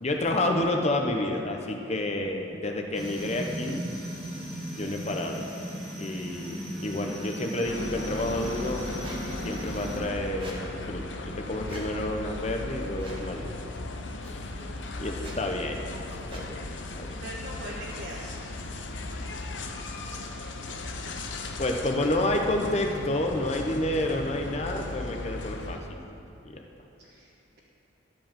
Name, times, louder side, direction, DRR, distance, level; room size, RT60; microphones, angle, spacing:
voice 1, 0.0-3.8 4.8-5.5 6.0-8.9 9.4-13.5 14.2-14.5 15.0-15.9 16.3-16.6 17.0-17.1 21.6-26.0 26.4-26.6, left 1 dB, 35° left, 3 dB, 0.8 m, -29 dB
sound 1, 2.9-10.0, right 1 dB, ahead, 1.5 m, -36 dB
sound 2, 7.6-25.8, left 2 dB, 75° left, 0.8 m, -37 dB
Squeak, 9.0-9.2 10.4-10.6 11.6-11.9 13.0-13.2 14.2-14.3 15.1-15.4 16.3-16.5, right 2 dB, 25° right, 1.4 m, -44 dB
voice 2, 15.0-15.5 17.1-18.3 27.0-27.3, equal, 55° right, -7 dB, 1.4 m, -41 dB
12.0 x 5.3 x 7.2 m, 2.9 s
head